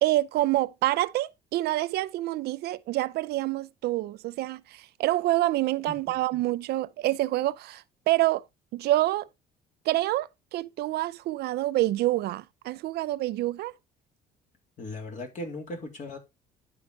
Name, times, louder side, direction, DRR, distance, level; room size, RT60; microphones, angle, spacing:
voice 1, 0.0-8.4 8.7-9.3 9.9-13.7, right 16 dB, 75° right, 0.5 m, -27 dB
voice 2, 14.8-16.2, left 1 dB, 45° left, 3.1 m, -37 dB
11.5 x 4.8 x 3.8 m
cardioid pair, 110°, 17 cm